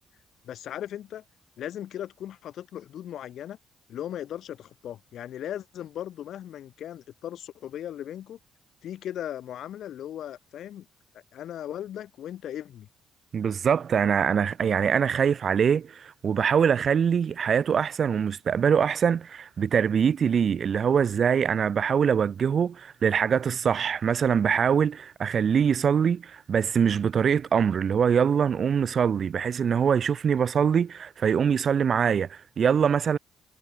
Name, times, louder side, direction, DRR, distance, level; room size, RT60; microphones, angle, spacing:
voice 1, 0.4-1.2 1.6-3.6 3.9-8.4 8.8-10.9 11.1-12.9, left 11 dB, 70° left, 2.8 m, -37 dB
voice 2, 13.3-33.2, right 7 dB, 50° right, 0.4 m, -23 dB
cardioid pair, 90°, 0 cm